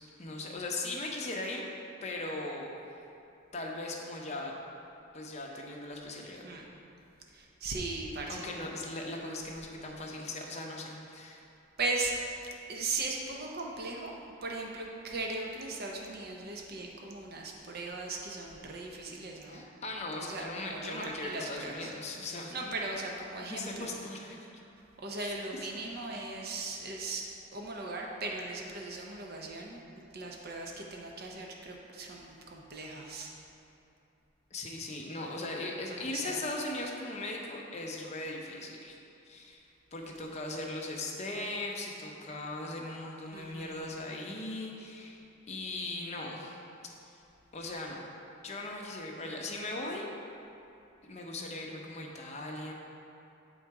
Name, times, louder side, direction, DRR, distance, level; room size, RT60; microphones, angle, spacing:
voice 1, 0.2-1.6 2.0-2.7 3.5-4.5 5.1-6.4 8.3-11.4 19.5-22.5 23.4-24.5 25.2-25.3 26.1-26.3 34.5-39.0 39.3-39.7 39.9-45.2 45.5-46.6 47.5-48.0 48.4-50.1 51.0-52.7, left 2 dB, 30° left, -1 dB, 0.7 m, -39 dB
voice 2, 7.3-8.5 11.8-12.1 12.7-19.6 20.2-21.9 22.5-24.0 25.0-29.8 30.1-33.3 35.9-36.4 43.3-43.9, right 3 dB, 50° right, -1 dB, 0.6 m, -38 dB
7.5 x 3.9 x 4.6 m, 2.8 s
head